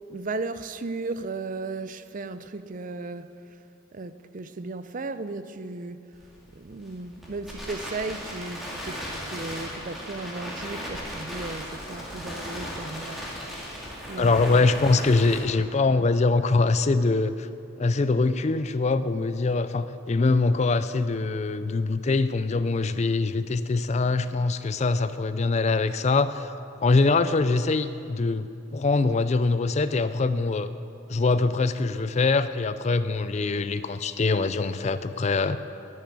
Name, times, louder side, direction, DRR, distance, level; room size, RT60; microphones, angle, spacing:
voice 1, 0.1-3.3 3.9-6.0 6.5-13.3 14.1-14.7, right 3 dB, 40° right, 0.5 m, -35 dB
Crackle, 6.1-15.4, equal, ahead, 2.3 m, -37 dB
voice 2, 14.2-17.5 17.8-26.5 26.8-30.7 31.1-35.6, left 3 dB, 35° left, 0.4 m, -23 dB
11.0 x 9.4 x 9.5 m
head